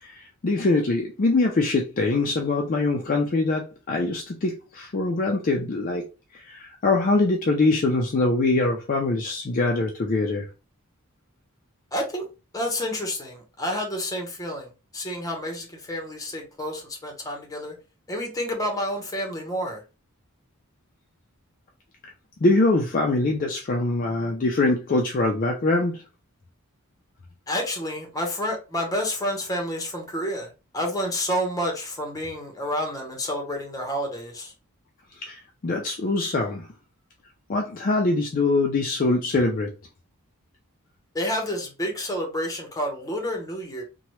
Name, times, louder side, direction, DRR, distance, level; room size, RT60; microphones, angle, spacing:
voice 1, 0.0-6.0 6.3-10.5 22.4-26.0 35.2-36.7 37.5-39.7, left 2 dB, 40° left, 0.4 m, -23 dB
voice 2, 11.9-12.3 12.5-17.7 18.1-19.8 27.5-34.5 41.1-43.8, equal, 15° left, 0.8 m, -29 dB
2.8 x 2.2 x 3.0 m
head